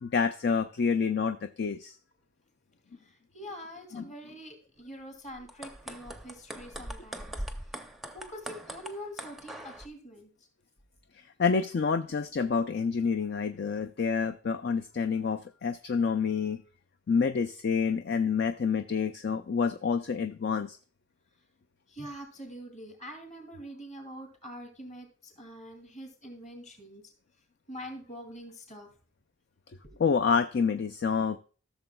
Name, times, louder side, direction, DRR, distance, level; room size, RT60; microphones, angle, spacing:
voice 1, 0.0-2.0 3.9-4.1 11.1-16.6 17.1-20.8 30.0-31.4, left 5 dB, 50° left, 8 dB, 0.4 m, -28 dB
voice 2, 3.0-7.4 8.1-10.3 21.9-27.1 27.7-28.9 29.8-30.0, equal, 35° left, 3 dB, 2.6 m, -45 dB
sound 1, 5.4-9.9, right 1 dB, ahead, 0.6 m, -41 dB
14.5 x 6.9 x 2.2 m, 0.38 s
head